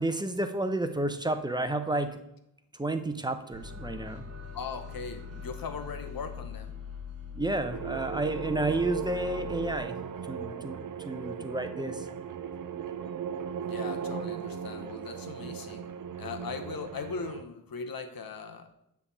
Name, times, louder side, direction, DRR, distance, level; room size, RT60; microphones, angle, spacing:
voice 1, 0.0-2.2 2.7-4.2 7.3-10.0 10.3-12.1, right 2 dB, 10° right, 9 dB, 0.6 m, -31 dB
sound 1, 3.5-9.7, left 7 dB, 45° right, 1.2 m, -42 dB
voice 2, 4.5-6.7 13.6-15.8 16.2-18.7, left 5 dB, 85° left, 7 dB, 1.0 m, -39 dB
sound 2, 7.7-17.4, right 8 dB, 70° right, 0.5 m, -37 dB
9.6 x 3.5 x 7.0 m, 0.83 s
wide cardioid pair, 110°, 34 cm